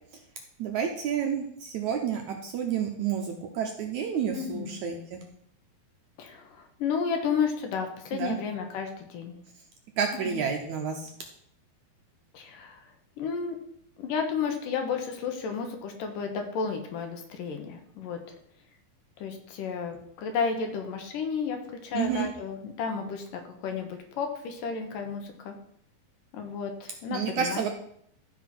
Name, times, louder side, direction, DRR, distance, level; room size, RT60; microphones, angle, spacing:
voice 1, 0.6-5.2 8.1-8.4 10.0-11.1 21.9-22.3 27.1-27.7, right 7 dB, 70° right, 2 dB, 1.9 m, -30 dB
voice 2, 4.3-4.7 6.2-9.4 10.3-10.4 12.3-12.8 13.2-13.6 14.0-18.2 19.2-25.6 26.3-27.6, left 6 dB, 70° left, 4 dB, 2.7 m, -32 dB
13.5 x 4.6 x 6.0 m, 0.68 s
omnidirectional pair, 4.2 m